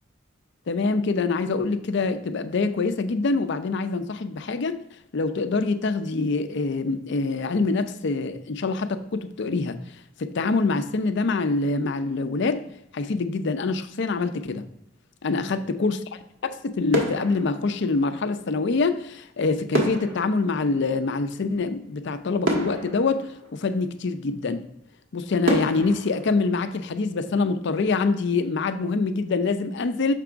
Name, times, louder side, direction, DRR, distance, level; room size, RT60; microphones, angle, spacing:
voice 1, 0.7-4.8 5.1-9.8 10.2-12.6 12.9-14.7 15.2-16.0 16.4-24.7 25.1-30.1, left 3 dB, 60° left, 10 dB, 0.5 m, -25 dB
sound 1, 16.2-16.6 16.9-18.4 19.7-21.6 22.1-22.2 22.4-24.0 24.6-24.7 25.4-27.3 27.7-27.9, right 1 dB, 85° right, 1.5 m, -29 dB
6.7 x 3.4 x 5.0 m, 0.80 s
head